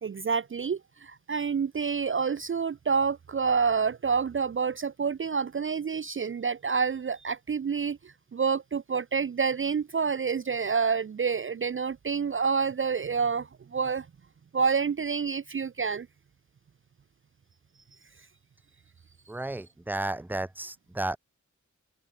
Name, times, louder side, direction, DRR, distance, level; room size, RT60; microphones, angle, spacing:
voice 1, 0.0-14.1 14.5-16.1, right 5 dB, 45° right, 0.5 m, -28 dB
voice 2, 19.3-21.2, right 2 dB, 5° right, 0.7 m, -33 dB
open air
wide cardioid pair, 100°, 30 cm